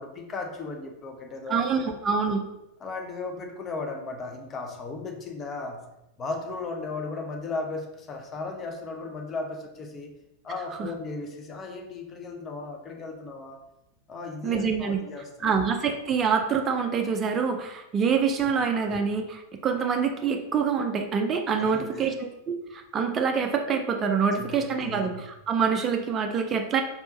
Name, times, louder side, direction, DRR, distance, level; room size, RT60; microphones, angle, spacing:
voice 1, 0.0-1.7 2.8-5.8 6.2-10.1 10.4-13.6 14.1-15.5 18.4-18.6 21.6-22.1 24.4-25.2, left 3 dB, 25° left, 3 dB, 0.8 m, -36 dB
voice 2, 1.5-2.4 10.8-10.9 14.4-15.0 15.4-26.8, right 6 dB, 25° right, 4 dB, 0.5 m, -26 dB
4.4 x 4.1 x 2.6 m, 0.90 s
figure-of-eight pair, 90°, 0 cm